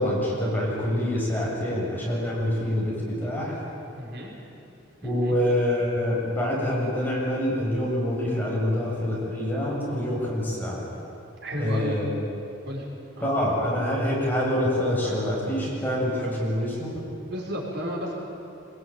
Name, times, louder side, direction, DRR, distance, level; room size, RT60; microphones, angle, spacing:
voice 1, 0.0-3.5 5.0-10.9 11.6-12.1 13.2-16.9, left 1 dB, 10° left, -5 dB, 7.9 m, -26 dB
voice 2, 3.9-4.4 5.0-5.4 11.4-12.0 12.7-12.9 13.1-13.3 15.0-15.2 17.2-18.1, equal, 60° right, -2 dB, 5.9 m, -33 dB
26.0 x 22.0 x 9.5 m, 2.7 s
head